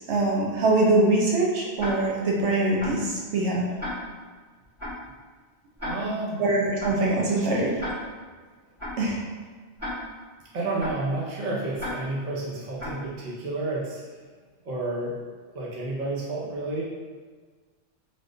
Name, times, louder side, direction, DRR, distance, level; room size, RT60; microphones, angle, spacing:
voice 1, 0.0-3.6 6.4-7.8 9.0-9.2, right 2 dB, 75° right, -3 dB, 0.9 m, -23 dB
Tick-tock, 1.8-1.9 2.8-2.9 3.8-3.9 4.8-4.9 5.8-5.9 6.8-6.9 7.8-7.9 8.8-8.9 9.8-9.9 10.8-10.9 11.8-11.9 12.8-12.9, left 1 dB, 15° right, 1.2 m, -33 dB
voice 2, 5.8-6.4 7.4-7.5 10.5-14.2 14.6-15.2 15.5-16.8, right 2 dB, 45° right, -5 dB, 0.7 m, -30 dB
3.5 x 2.6 x 2.5 m, 1.5 s
omnidirectional pair, 1.2 m